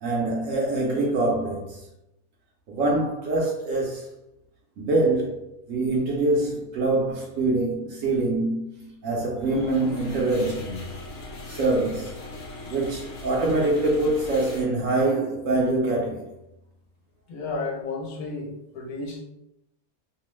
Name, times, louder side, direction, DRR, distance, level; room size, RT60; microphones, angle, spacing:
voice 1, 0.0-1.8 2.7-4.1 4.8-5.4 5.7-10.9 11.5-12.1 12.7-16.2, right 2 dB, 70° right, 0.9 m, -24 dB
sound 1, 9.4-14.6, left 2 dB, 60° left, 1.0 m, -39 dB
voice 2, 17.3-19.2, left 3 dB, 85° left, 1.2 m, -32 dB
2.9 x 2.0 x 3.1 m
omnidirectional pair, 1.5 m